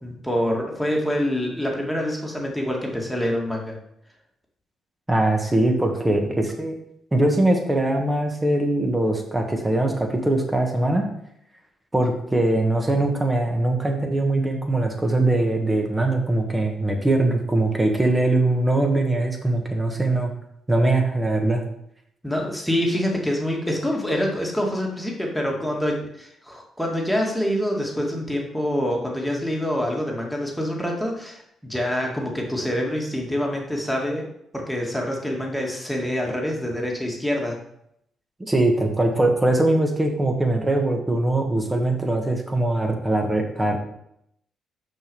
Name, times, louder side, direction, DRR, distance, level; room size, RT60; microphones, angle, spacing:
voice 1, 0.0-3.8 22.2-34.3 34.5-37.6, equal, ahead, -1 dB, 2.1 m, -26 dB
voice 2, 5.1-6.8 7.1-11.0 11.9-20.3 20.7-21.6 38.4-43.8, right 2 dB, 15° right, 3 dB, 1.5 m, -21 dB
6.3 x 5.0 x 5.4 m, 0.75 s
cardioid pair, 90°, 0 cm